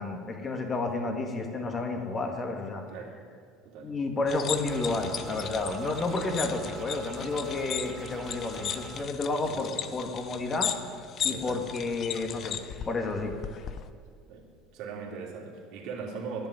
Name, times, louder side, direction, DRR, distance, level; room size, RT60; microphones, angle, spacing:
voice 1, 0.0-2.8 3.8-10.7 11.2-12.6 12.9-13.4, left 3 dB, 30° left, 4 dB, 2.3 m, -31 dB
sound 1, 4.3-13.9, left 8 dB, 50° left, 0.8 m, -37 dB
sound 2, 4.6-9.0, right 6 dB, 40° right, 1.5 m, -44 dB
voice 2, 11.3-11.6 14.3-14.5 14.7-16.5, right 5 dB, 65° right, 0 dB, 3.1 m, -39 dB
10.5 x 10.5 x 10.0 m, 2.1 s
hypercardioid pair, 80°, 0 cm